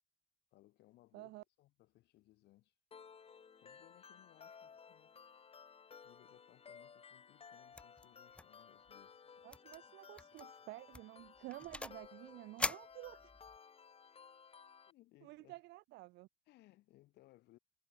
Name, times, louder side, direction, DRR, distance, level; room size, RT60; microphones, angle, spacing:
voice 1, 0.5-2.7 3.6-5.2 6.0-9.3 14.8-15.6 16.5-17.6, left 17 dB, 80° left, 4.2 m, -66 dB
voice 2, 1.1-1.4 9.4-13.3 15.2-16.3, right 19 dB, 85° right, 1.8 m, -51 dB
sound 1, 2.9-14.9, left 6 dB, 35° left, 2.9 m, -58 dB
sound 2, 7.8-8.1 8.3-8.6 8.9-9.0 9.5-9.8 10.2-10.4 10.9-12.1 12.6-13.6, left 1 dB, 5° left, 0.6 m, -42 dB
cardioid pair, 110°, 17 cm